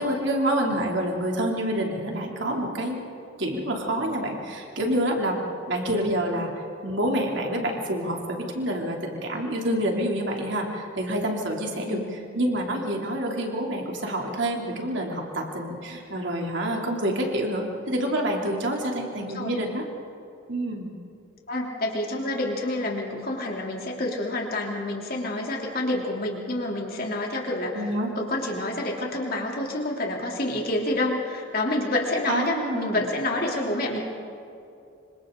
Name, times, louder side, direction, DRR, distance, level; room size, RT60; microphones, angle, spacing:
voice 1, 0.0-3.0 3.4-5.4 5.7-6.5 6.8-12.0 12.3-19.8 20.5-20.9 27.7-28.1 32.3-33.0, right 1 dB, 65° right, 0 dB, 3.0 m, -27 dB
voice 2, 5.9-6.4 11.9-12.2 19.2-19.6 21.5-34.0, left 1 dB, 50° left, -1 dB, 3.2 m, -28 dB
26.5 x 25.0 x 3.9 m, 2.7 s
head